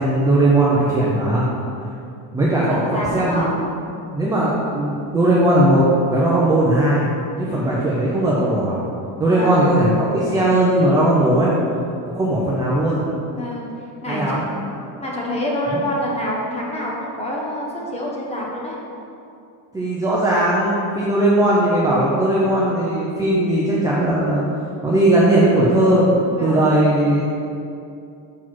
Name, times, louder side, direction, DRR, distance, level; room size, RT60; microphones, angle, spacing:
voice 1, 0.0-1.5 2.3-3.5 4.1-7.1 7.3-8.7 9.2-11.5 12.1-13.0 14.1-14.5 15.7-15.8 19.7-24.4 24.8-26.1 26.4-27.2, right 1 dB, 10° right, -7 dB, 0.5 m, -18 dB
voice 2, 2.4-3.6 7.4-7.7 9.3-9.7 13.3-13.7 14.0-14.4 15.0-18.8 26.3-26.7, equal, 15° left, -3 dB, 1.0 m, -27 dB
6.0 x 4.7 x 5.9 m, 2.6 s
cardioid pair, 175°, 44 cm